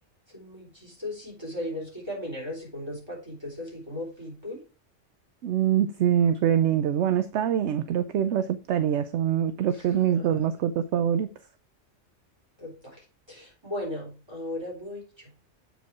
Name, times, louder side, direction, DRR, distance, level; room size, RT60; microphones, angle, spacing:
voice 1, 0.3-4.6 9.7-9.8 10.1-10.5 12.6-13.0 13.3-15.3, left 1 dB, 20° right, 3.5 m, -37 dB
voice 2, 5.4-11.3, right 9 dB, 70° right, 0.8 m, -24 dB
7.9 x 5.0 x 4.6 m
omnidirectional pair, 1.3 m